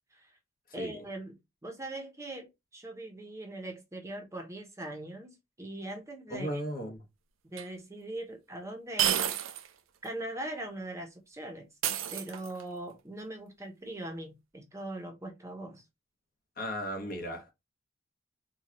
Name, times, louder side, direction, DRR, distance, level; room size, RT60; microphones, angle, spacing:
voice 1, 0.7-5.3 5.6-6.6 7.4-9.3 10.0-11.7 12.1-15.8, right 1 dB, 15° right, 0.8 m, -41 dB
voice 2, 6.3-7.0 16.6-17.5, equal, 50° left, 1.2 m, -36 dB
sound 1, 7.6-7.7 9.0-9.7 10.0-10.1 11.8-12.7, right 10 dB, 80° right, 0.5 m, -30 dB
4.3 x 2.3 x 2.9 m
head